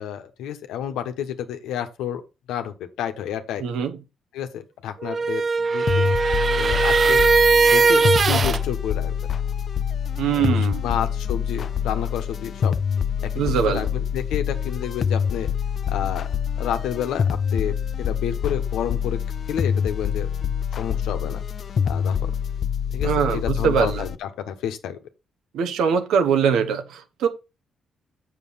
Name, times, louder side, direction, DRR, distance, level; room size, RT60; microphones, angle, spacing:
voice 1, 0.0-2.2 2.5-3.6 4.3-6.1 6.5-7.2 7.7-9.3 10.3-12.7 13.2-15.5 15.9-16.3 16.6-19.2 19.5-20.3 20.8-21.4 21.8-22.3 22.9-25.0, left 9 dB, 85° left, 1.2 m, -30 dB
voice 2, 3.6-3.9 10.2-10.8 13.4-13.9 23.0-24.1 25.5-27.3, right 7 dB, 80° right, 1.1 m, -22 dB
sound 1, 5.0-8.6, right 4 dB, 40° right, 0.4 m, -19 dB
sound 2, 5.9-24.2, left 7 dB, 50° left, 0.5 m, -26 dB
7.6 x 6.4 x 4.1 m
cardioid pair, 90°, 0 cm